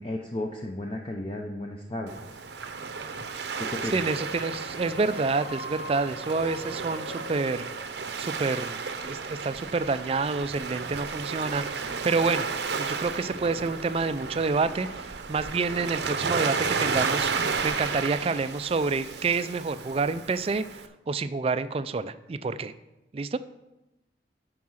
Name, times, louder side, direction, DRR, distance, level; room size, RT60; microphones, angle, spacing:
voice 1, 0.0-2.4 3.7-4.0, left 1 dB, 30° left, 1 dB, 0.6 m, -34 dB
Waves surf, 2.1-20.9, right 5 dB, 70° right, 0.7 m, -33 dB
sound 1, 3.9-8.6, left 1 dB, 90° left, 1.5 m, -41 dB
voice 2, 3.9-7.7 8.2-12.5 12.7-20.6 21.1-22.7 23.1-23.4, right 4 dB, 30° right, 13 dB, 0.3 m, -28 dB
9.4 x 4.8 x 6.3 m, 0.98 s
head